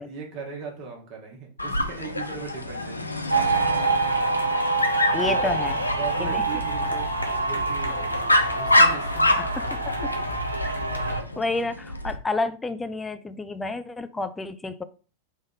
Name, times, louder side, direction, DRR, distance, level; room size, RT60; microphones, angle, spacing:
voice 1, 0.0-3.0 5.2-5.5 6.0-9.3, right 4 dB, 40° right, 1.2 m, -38 dB
Dog, 1.6-12.2, left 1 dB, 85° left, 0.4 m, -27 dB
sound 1, 3.3-11.2, right 3 dB, 90° right, 0.6 m, -26 dB
voice 2, 5.1-5.8 6.2-6.4 9.1-10.1 10.6-14.8, left 3 dB, 10° left, 0.4 m, -31 dB
3.4 x 2.5 x 3.9 m
figure-of-eight pair, 90°, 0 cm